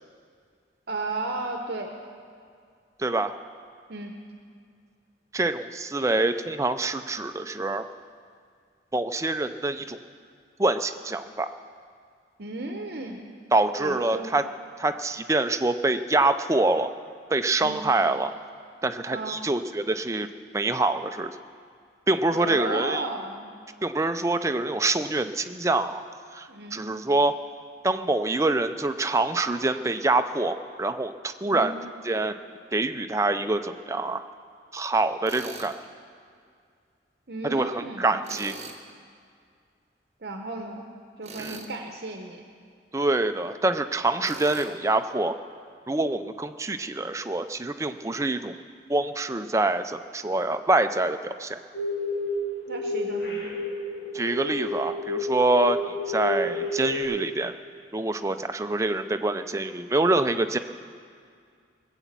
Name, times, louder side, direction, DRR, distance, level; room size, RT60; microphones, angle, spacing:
voice 1, 0.9-1.9 3.9-4.2 12.4-13.3 13.8-14.3 17.6-17.9 19.1-19.4 22.3-23.5 26.5-26.9 31.4-31.8 37.3-38.2 40.2-40.8 41.2-42.4 52.7-53.5, right 2 dB, 55° right, 3 dB, 0.9 m, -34 dB
voice 2, 3.0-3.3 5.3-7.9 8.9-10.0 10.6-11.5 13.5-14.4 14.8-16.9 17.3-18.3 18.8-20.3 20.5-21.4 22.1-23.1 23.8-26.0 26.3-27.4 27.8-31.7 32.0-32.3 32.7-34.2 34.7-35.7 37.4-38.5 41.4-41.6 42.9-45.4 45.9-48.5 48.9-51.6 54.1-57.5 57.9-60.6, right 2 dB, 15° right, 8 dB, 0.5 m, -25 dB
Tools, 35.2-35.7 38.2-38.8 41.2-41.8 44.2-44.7, right 3 dB, 35° right, 1.3 m, -41 dB
sound 1, 51.7-52.3 52.7-57.0, left 3 dB, 65° left, 4.7 m, -30 dB
19.5 x 8.1 x 7.4 m, 2.2 s
head